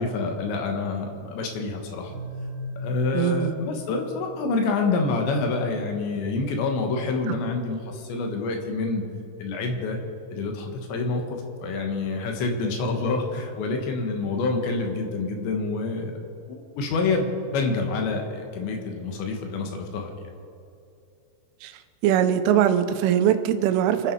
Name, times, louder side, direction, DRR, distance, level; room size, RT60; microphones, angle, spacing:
voice 1, 0.0-2.1 2.8-9.0 9.4-10.0 10.3-20.3, left 3 dB, 70° left, 3 dB, 3.5 m, -27 dB
sound 1, 2.1-4.8, left 2 dB, 60° right, 5.1 m, -37 dB
voice 2, 3.1-3.5 7.3-7.4 21.6-21.7 22.0-24.1, right 10 dB, 85° right, 9 dB, 3.4 m, -21 dB
26.5 x 10.0 x 4.6 m, 2.6 s
omnidirectional pair, 5.5 m